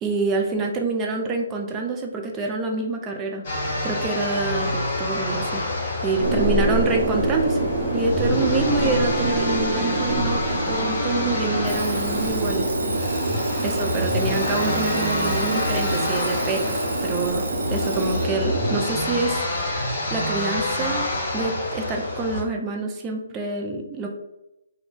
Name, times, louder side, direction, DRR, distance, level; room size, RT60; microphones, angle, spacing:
voice 1, 0.0-3.4 3.8-5.7 6.0-7.7 7.9-12.7 13.1-13.2 13.6-21.1 21.3-24.1, right 3 dB, 20° right, 2 dB, 0.4 m, -27 dB
sound 1, 3.4-22.4, left 1 dB, 45° left, 1.2 m, -27 dB
sound 2, 6.2-18.8, right 2 dB, 45° right, 0.9 m, -26 dB
Alarm, 11.6-18.3, right 3 dB, 75° right, 0.7 m, -33 dB
2.5 x 2.2 x 3.7 m, 0.90 s
hypercardioid pair, 145°, 0 cm